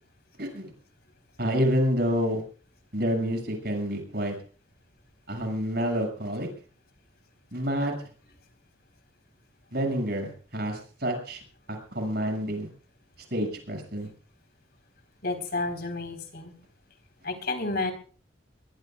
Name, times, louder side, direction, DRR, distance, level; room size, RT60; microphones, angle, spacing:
voice 1, 0.4-0.7 1.4-2.4 2.9-4.4 5.3-6.5 7.5-7.9 9.7-11.4 11.7-12.7 13.3-14.1, equal, 55° right, 3 dB, 7.2 m, -28 dB
voice 2, 15.2-16.5 17.2-17.9, left 3 dB, 55° left, 7 dB, 4.2 m, -30 dB
23.5 x 22.5 x 2.5 m, 0.40 s
head